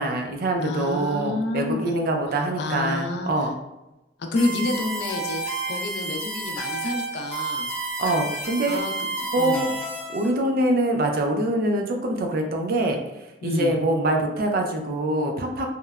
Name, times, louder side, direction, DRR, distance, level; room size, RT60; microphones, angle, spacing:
voice 1, 0.0-3.5 8.0-8.8 9.3-9.7 10.1-13.0 13.4-15.7, right 1 dB, 55° right, 3 dB, 0.4 m, -24 dB
voice 2, 0.6-1.9 2.6-3.3 4.2-5.4 5.7-7.7 8.7-8.9 9.4-9.7 13.4-13.8, left 2 dB, 70° left, 3 dB, 0.4 m, -28 dB
sound 1, 4.4-10.3, right 2 dB, 10° left, 0.7 m, -31 dB
2.9 x 2.0 x 2.3 m, 0.95 s
head